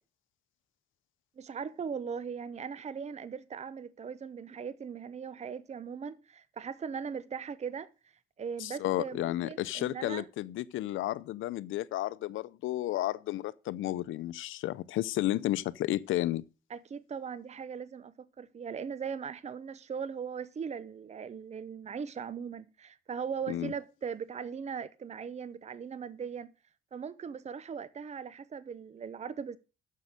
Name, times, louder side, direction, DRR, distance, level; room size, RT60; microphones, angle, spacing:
voice 1, 1.4-7.9 8.4-10.3 16.7-26.5 26.9-29.6, right 6 dB, 35° right, 0.7 m, -39 dB
voice 2, 8.6-16.4 23.5-23.7, left 15 dB, 80° left, 0.6 m, -32 dB
9.5 x 7.5 x 6.6 m
cardioid pair, 90°, 20 cm